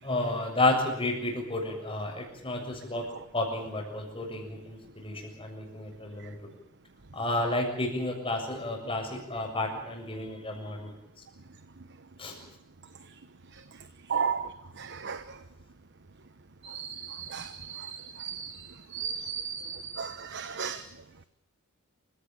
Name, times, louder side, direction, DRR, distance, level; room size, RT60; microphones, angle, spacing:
voice 1, 0.0-3.1 3.3-4.8 5.0-6.5 7.1-10.9 12.2-12.3, left 2 dB, 25° left, 2 dB, 7.1 m, -31 dB
voice 2, 14.1-14.4 15.0-15.2 16.6-18.5 18.9-20.8, right 6 dB, 55° right, 12 dB, 1.1 m, -34 dB
28.0 x 16.5 x 8.9 m, 0.82 s
head